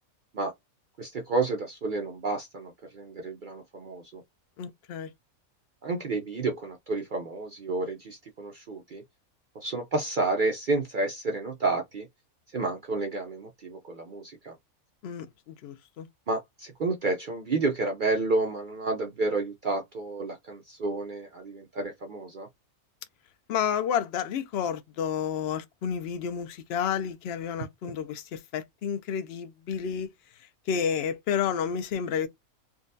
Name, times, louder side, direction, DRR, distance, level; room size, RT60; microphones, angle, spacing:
voice 1, 1.0-4.2 5.8-9.0 9.6-12.1 12.5-14.5 16.3-22.5, right 3 dB, 60° right, 0.5 m, -30 dB
voice 2, 4.6-5.1 15.0-16.1 23.5-30.1 30.4-32.3, left 8 dB, 60° left, 0.7 m, -30 dB
3.7 x 2.2 x 2.6 m
omnidirectional pair, 1.5 m